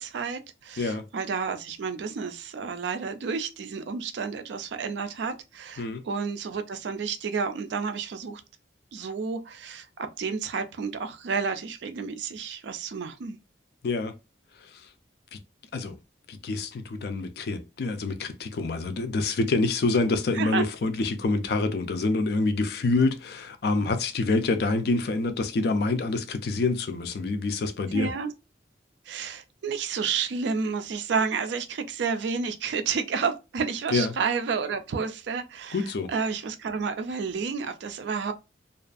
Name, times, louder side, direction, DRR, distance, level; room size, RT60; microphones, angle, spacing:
voice 1, 0.0-8.4 8.9-13.4 20.3-20.6 27.9-28.3 29.1-38.3, right 5 dB, 70° right, 0.4 m, -30 dB
voice 2, 0.8-1.1 5.8-6.1 13.8-14.1 14.6-14.9 15.3-15.4 15.7-16.0 16.3-28.1 33.9-34.1 35.7-36.1, left 3 dB, 55° left, 0.3 m, -27 dB
2.5 x 2.3 x 2.4 m
head